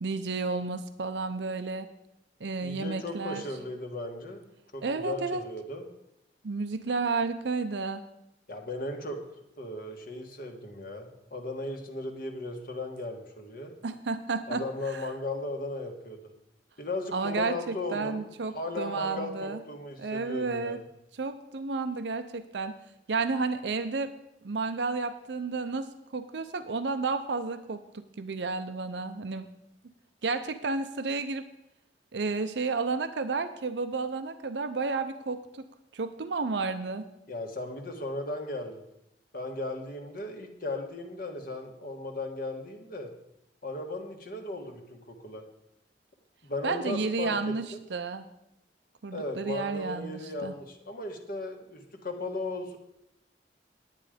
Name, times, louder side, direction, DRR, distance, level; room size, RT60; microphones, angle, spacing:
voice 1, 0.0-1.9 2.4-3.4 4.8-5.4 6.4-8.0 13.8-15.1 17.1-19.6 20.0-20.8 21.1-22.7 23.1-24.1 24.4-29.5 30.2-31.4 32.1-35.6 35.9-37.1 46.6-48.3 49.0-50.5, right 4 dB, 70° right, 9 dB, 0.6 m, -32 dB
voice 2, 2.6-4.5 4.7-5.9 8.5-9.2 9.6-13.7 14.5-16.2 16.8-18.3 18.5-20.8 37.3-38.8 39.3-43.1 43.6-45.4 46.4-47.8 49.1-52.8, left 2 dB, 55° left, 4 dB, 1.5 m, -36 dB
9.9 x 9.3 x 5.1 m, 0.83 s
head